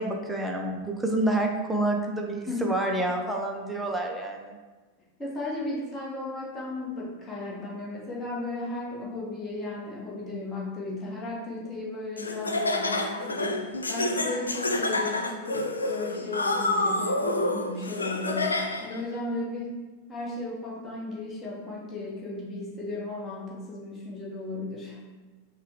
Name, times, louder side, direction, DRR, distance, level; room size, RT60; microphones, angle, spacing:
voice 1, 0.0-4.6, right 1 dB, 5° right, 1 dB, 0.6 m, -28 dB
voice 2, 5.2-19.8 20.1-25.0, left 2 dB, 15° left, -5 dB, 1.2 m, -35 dB
Laughter, 12.2-19.0, left 2 dB, 75° left, 0.4 m, -28 dB
5.5 x 2.3 x 3.6 m, 1.3 s
figure-of-eight pair, 90°, 0 cm